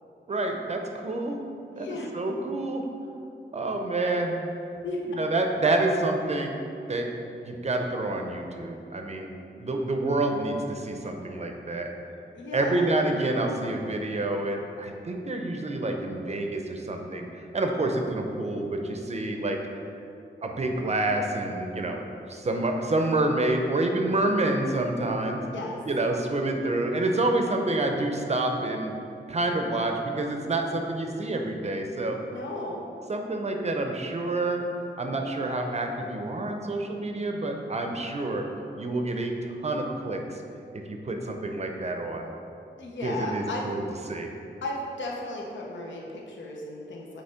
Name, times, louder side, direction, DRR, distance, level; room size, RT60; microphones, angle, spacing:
voice 1, 0.3-1.4 1.7-2.8 3.5-4.4 5.2-6.6 6.9-7.1 7.5-11.9 12.5-17.3 17.5-19.6 20.4-22.0 22.3-25.4 25.9-28.9 29.3-32.2 33.1-34.6 35.0-38.4 38.8-40.2 40.9-42.3 43.0-43.8 44.1-44.3, right 2 dB, 35° right, 3 dB, 0.5 m, -28 dB
voice 2, 1.7-2.1 4.8-5.0 12.3-12.9 25.4-25.8 32.3-32.8 42.8-43.7 44.6-47.2, left 2 dB, 80° left, -1 dB, 0.7 m, -35 dB
7.9 x 3.1 x 4.3 m, 2.7 s
wide cardioid pair, 140°, 19 cm